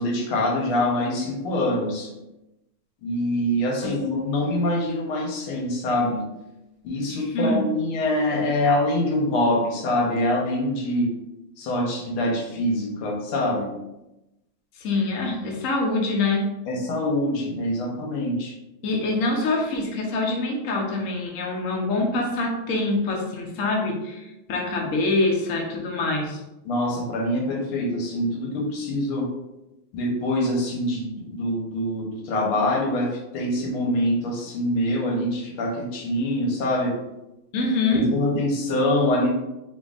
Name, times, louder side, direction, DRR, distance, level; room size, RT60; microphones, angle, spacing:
voice 1, 0.0-2.1 3.0-6.3 6.8-11.1 11.6-13.7 16.7-18.6 26.7-29.3 29.9-36.9 37.9-39.3, left 1 dB, 85° left, 0 dB, 1.7 m, -24 dB
voice 2, 7.1-7.6 14.8-16.5 18.8-26.4 37.5-38.0, left 2 dB, 65° left, 0 dB, 0.8 m, -25 dB
5.1 x 2.8 x 2.4 m, 0.95 s
omnidirectional pair, 2.3 m